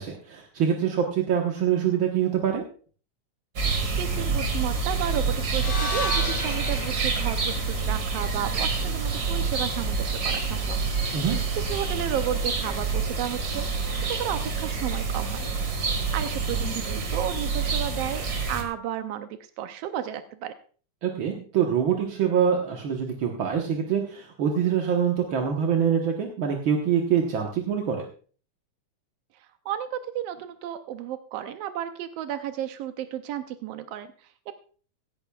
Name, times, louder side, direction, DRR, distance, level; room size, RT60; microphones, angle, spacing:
voice 1, 0.0-2.6 11.1-11.4 21.0-28.0, right 8 dB, 55° right, 1 dB, 1.5 m, -25 dB
sound 1, 3.6-18.6, right 4 dB, 35° right, 1.8 m, -27 dB
voice 2, 3.9-10.8 11.6-15.5 15.9-20.5 29.4-34.1, right 10 dB, 85° right, 9 dB, 1.4 m, -33 dB
sound 2, 5.5-9.7, left 1 dB, 45° left, 3.3 m, -35 dB
17.0 x 14.0 x 2.3 m, 0.42 s
omnidirectional pair, 3.7 m